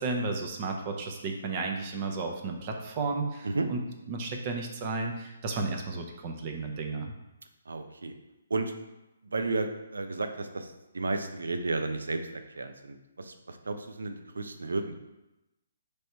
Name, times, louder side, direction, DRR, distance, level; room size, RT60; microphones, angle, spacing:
voice 1, 0.0-3.8 4.1-7.1, right 3 dB, 35° right, 3 dB, 0.6 m, -33 dB
voice 2, 7.7-8.1 8.5-8.7 9.2-14.9, right 3 dB, 80° right, 7 dB, 0.4 m, -33 dB
3.3 x 2.7 x 4.4 m, 0.97 s
hypercardioid pair, 140°, 0 cm